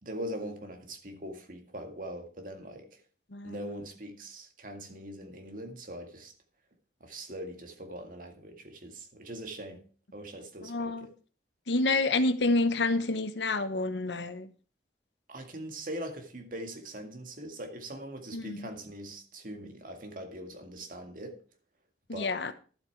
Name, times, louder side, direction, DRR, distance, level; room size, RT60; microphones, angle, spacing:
voice 1, 0.0-3.0 3.4-6.3 7.0-11.1 15.3-21.4 22.1-22.4, right 1 dB, 50° right, 2.0 m, -42 dB
voice 2, 3.3-3.7 10.6-11.1 11.7-14.5 18.3-18.7 22.1-22.5, left 2 dB, 85° left, 1.1 m, -29 dB
11.5 x 8.1 x 4.6 m
head